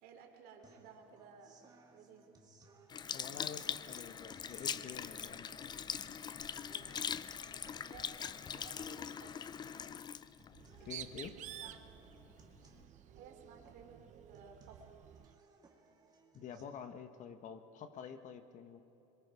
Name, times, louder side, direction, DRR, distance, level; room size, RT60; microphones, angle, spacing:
voice 1, 0.0-2.4 7.8-9.7 10.7-11.8 13.1-14.0 14.3-14.8, right 6 dB, 60° right, 4 dB, 3.0 m, -57 dB
sound 1, 0.6-16.6, right 3 dB, 20° right, 2.4 m, -64 dB
Sink (filling or washing) / Liquid, 2.9-11.5 12.1-12.2, left 7 dB, 25° left, 0.4 m, -42 dB
voice 2, 3.1-5.7 10.8-11.4 16.3-18.8, left 7 dB, 45° left, 8 dB, 1.2 m, -48 dB
Bird, 10.5-15.4, right 11 dB, 40° right, 0.8 m, -51 dB
26.5 x 22.5 x 4.8 m, 3.0 s
supercardioid pair, 125°, 18 cm